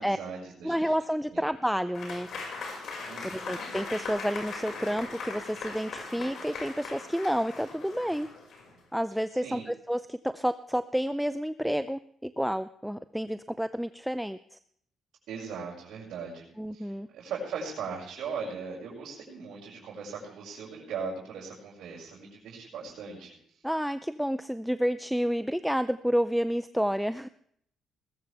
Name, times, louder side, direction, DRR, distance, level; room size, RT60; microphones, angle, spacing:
voice 1, 0.0-0.9 1.3-1.4 3.0-3.5 9.4-9.7 15.3-23.4, right 5 dB, 80° right, -7 dB, 5.7 m, -39 dB
voice 2, 0.6-2.3 3.2-8.3 8.9-14.6 16.6-17.1 23.6-27.3, equal, ahead, 12 dB, 0.5 m, -30 dB
Applause / Crowd, 1.9-8.8, left 4 dB, 65° left, 5.6 m, -39 dB
19.5 x 14.0 x 3.4 m, 0.66 s
cardioid pair, 90°, 0 cm